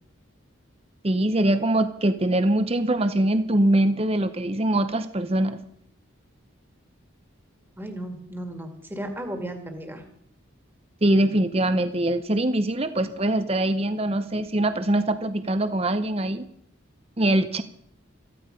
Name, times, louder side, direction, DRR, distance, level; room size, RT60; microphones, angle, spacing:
voice 1, 1.0-5.6 11.0-16.5 17.2-17.6, right 1 dB, 30° right, 10 dB, 0.7 m, -23 dB
voice 2, 7.8-10.0, right 1 dB, 10° right, 5 dB, 2.0 m, -35 dB
14.5 x 14.5 x 5.2 m, 0.67 s
head